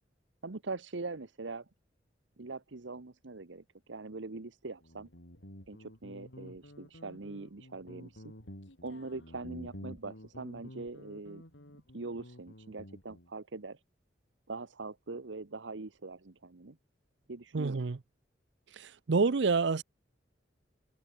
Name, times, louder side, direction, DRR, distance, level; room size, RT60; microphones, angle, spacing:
voice 1, 0.4-1.7 2.4-5.1 5.7-8.3 8.8-11.4 11.9-13.8 14.5-16.8 17.3-17.9, right 3 dB, 90° right, 1.1 m, -42 dB
Guitar, 4.8-13.3, left 1 dB, 85° left, 5.2 m, -50 dB
voice 2, 17.5-18.0 18.7-19.8, right 4 dB, 70° right, 0.6 m, -28 dB
head